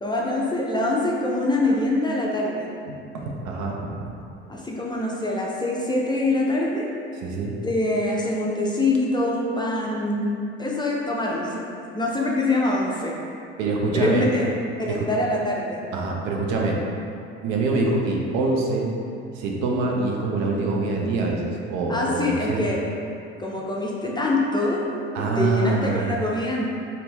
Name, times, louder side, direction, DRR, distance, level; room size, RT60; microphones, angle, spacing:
voice 1, 0.0-2.7 4.5-6.9 7.6-11.6 11.9-13.2 13.9-14.5 14.8-15.8 21.9-22.8 23.4-24.8 25.2-26.7, left 2 dB, 15° left, -3 dB, 0.6 m, -24 dB
voice 2, 3.1-4.1 7.1-7.6 13.6-14.3 14.9-15.0 15.9-16.8 17.4-18.9 19.3-22.6 25.1-26.1, right 3 dB, 60° right, -1 dB, 0.7 m, -25 dB
4.2 x 2.8 x 3.4 m, 2.5 s
hypercardioid pair, 70°, 32 cm